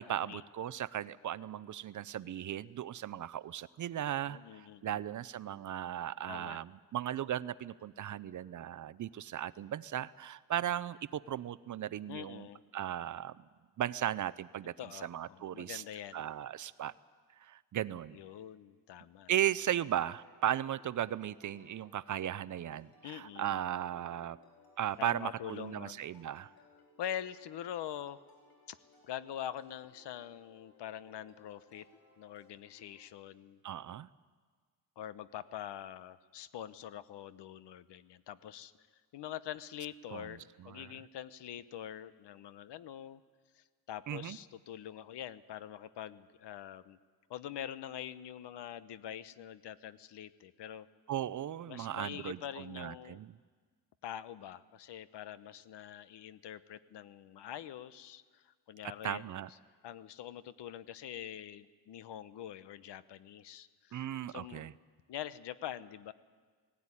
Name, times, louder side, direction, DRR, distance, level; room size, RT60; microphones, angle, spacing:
voice 1, 0.0-12.5 12.7-13.4 13.8-15.8 16.1-16.9 17.4-18.2 19.3-24.4 24.8-26.5 33.6-34.1 40.1-40.3 40.6-40.9 44.1-44.4 51.1-53.4 59.0-59.5 63.9-64.7, right 11 dB, 50° right, 18 dB, 0.5 m, -36 dB
voice 2, 4.3-5.0 6.3-6.6 12.1-12.6 14.8-16.2 18.1-19.3 23.0-23.5 25.0-26.0 27.0-28.2 28.7-28.8 29.0-31.9 32.2-33.6 35.0-38.7 39.1-43.2 43.5-47.0 47.3-50.9 51.7-53.2 54.0-59.2 59.8-64.6 65.1-66.1, left 10 dB, 80° left, 15 dB, 0.9 m, -44 dB
sound 1, 19.3-33.0, left 3 dB, 60° left, 4.8 m, -64 dB
18.0 x 16.5 x 9.8 m, 1.5 s
wide cardioid pair, 165°, 41 cm